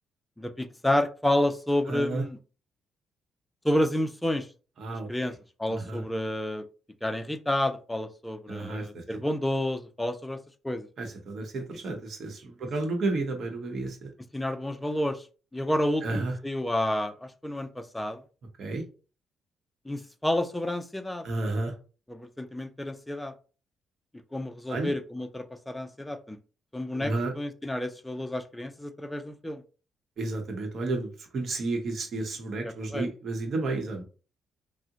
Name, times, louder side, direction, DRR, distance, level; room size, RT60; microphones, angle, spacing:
voice 1, 0.4-2.4 3.6-4.5 4.9-5.3 5.6-6.7 7.0-10.4 10.6-10.9 14.3-15.2 15.5-18.2 19.9-21.2 22.1-23.3 24.3-26.4 26.7-29.6 32.9-33.0, left 1 dB, 10° left, 8 dB, 0.4 m, -30 dB
voice 2, 1.9-2.2 4.8-5.3 5.7-6.0 8.5-9.2 11.0-14.1 16.0-16.3 18.6-18.8 21.2-21.7 24.7-24.9 26.9-27.3 30.2-34.0, right 2 dB, 55° right, 3 dB, 0.8 m, -32 dB
3.5 x 2.0 x 2.8 m, 0.36 s
cardioid pair, 90°, 0 cm